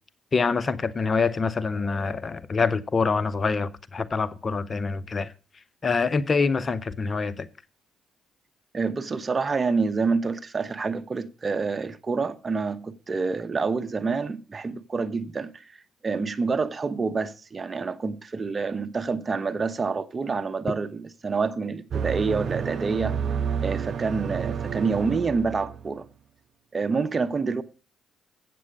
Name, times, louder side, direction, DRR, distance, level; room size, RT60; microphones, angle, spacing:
voice 1, 0.3-5.3 5.8-7.5, left 4 dB, 40° left, 0.6 m, -25 dB
voice 2, 8.7-15.7 16.0-23.1 23.6-26.1 26.7-27.6, right 4 dB, 35° right, 0.9 m, -27 dB
sound 1, 21.9-26.0, right 7 dB, 60° right, 0.7 m, -30 dB
8.2 x 7.7 x 6.4 m
supercardioid pair, 60°, 0 cm